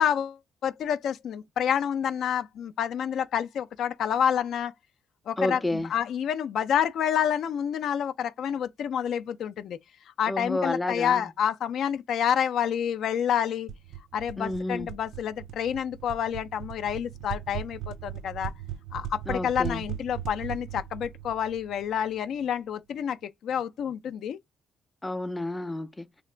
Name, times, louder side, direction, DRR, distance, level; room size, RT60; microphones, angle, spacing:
voice 1, 0.0-4.7 5.3-9.8 10.2-13.7 14.1-18.5 18.9-24.4, left 9 dB, 70° left, 0.4 m, -28 dB
voice 2, 5.4-5.9 10.3-11.2 14.4-14.9 19.3-19.8 25.0-26.1, left 1 dB, 15° left, 0.5 m, -30 dB
sound 1, 13.7-22.3, right 10 dB, 80° right, 0.4 m, -39 dB
2.8 x 2.5 x 3.2 m
cardioid pair, 90°, 0 cm